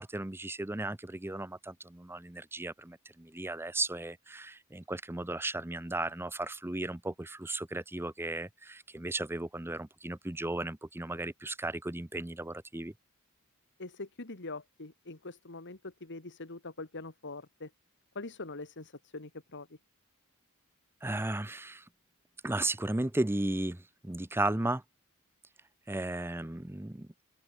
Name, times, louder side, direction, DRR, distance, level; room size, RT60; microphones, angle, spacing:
voice 1, 0.0-12.9 21.0-21.8 22.4-24.8 25.9-27.1, right 2 dB, 10° right, 0.6 m, -35 dB
voice 2, 13.8-17.7 18.2-19.7, left 3 dB, 55° left, 2.1 m, -43 dB
open air
head